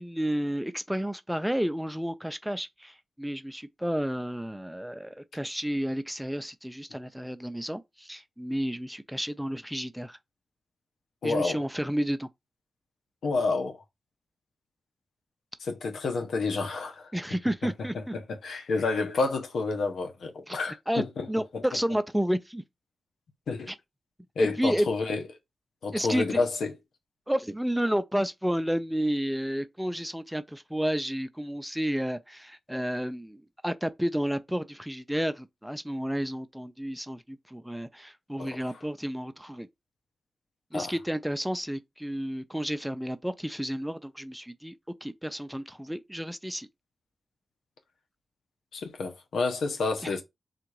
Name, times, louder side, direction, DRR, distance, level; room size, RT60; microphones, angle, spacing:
voice 1, 0.0-10.2 11.2-12.3 17.1-18.1 20.5-20.6 20.9-22.6 23.7-23.8 24.4-24.9 25.9-26.4 27.3-39.7 40.7-44.7 45.0-46.7 50.0-50.2, equal, 5° right, 0.5 m, -31 dB
voice 2, 11.2-11.6 13.2-13.8 15.6-17.1 17.6-21.3 21.5-21.6 23.5-23.7 24.4-25.2 25.8-26.8 38.4-38.6 40.7-40.9 48.7-50.2, left 3 dB, 85° left, 0.8 m, -29 dB
3.8 x 2.5 x 4.6 m
cardioid pair, 55°, 0 cm